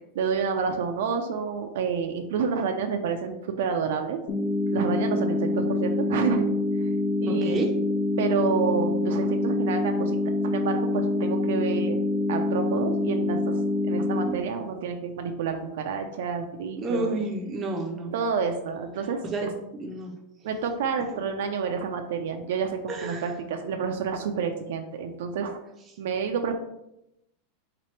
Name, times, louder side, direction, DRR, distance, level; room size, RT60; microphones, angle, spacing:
voice 1, 0.1-4.2 4.7-6.9 7.2-7.6 8.2-10.2 10.4-12.0 12.3-17.2 18.1-19.5 20.4-25.6 26.0-26.5, right 6 dB, 75° right, 5 dB, 0.4 m, -29 dB
sound 1, 4.3-14.3, left 2 dB, 40° left, 0.6 m, -26 dB
voice 2, 7.3-7.7 16.8-18.1 19.3-19.5 19.8-20.1 21.1-21.2 22.9-23.2, right 2 dB, 20° right, 1 dB, 0.5 m, -30 dB
3.3 x 2.9 x 3.2 m, 0.84 s
supercardioid pair, 155°, 0 cm